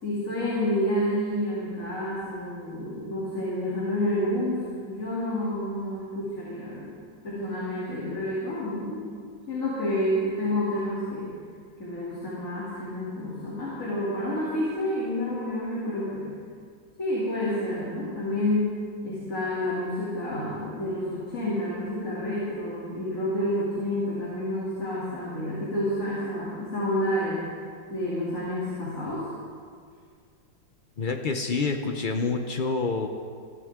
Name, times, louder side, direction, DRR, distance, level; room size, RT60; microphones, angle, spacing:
voice 1, 0.0-6.9 7.2-9.1 9.5-11.3 11.8-16.4 17.0-18.7 19.0-27.4 27.9-29.3, left 1 dB, 40° left, -8 dB, 3.3 m, -29 dB
voice 2, 31.0-33.1, left 4 dB, 80° left, 4 dB, 0.4 m, -27 dB
21.5 x 14.0 x 3.7 m, 2.1 s
omnidirectional pair, 2.1 m